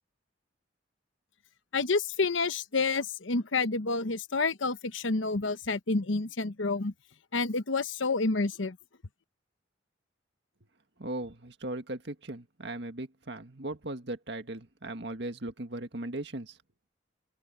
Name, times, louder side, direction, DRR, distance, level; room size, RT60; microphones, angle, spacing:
voice 1, 1.7-6.9 7.3-8.8, left 3 dB, 80° left, 1.1 m, -29 dB
voice 2, 11.0-16.6, right 1 dB, 60° right, 1.9 m, -38 dB
head